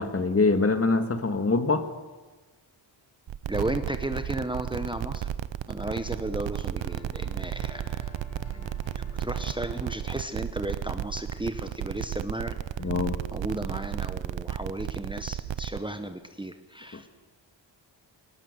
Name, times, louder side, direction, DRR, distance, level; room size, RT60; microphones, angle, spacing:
voice 1, 0.0-1.9 12.8-13.2 16.9-17.0, left 3 dB, 30° left, 8 dB, 1.9 m, -24 dB
sound 1, 3.3-15.8, right 11 dB, 70° right, 0.8 m, -33 dB
voice 2, 3.5-5.3 5.7-8.1 8.5-12.9 13.3-17.1, right 1 dB, 10° right, 8 dB, 1.1 m, -34 dB
sound 2, 6.8-10.7, equal, 80° left, 3.2 m, -48 dB
19.0 x 18.0 x 8.0 m, 1.3 s
cardioid pair, 75°, 46 cm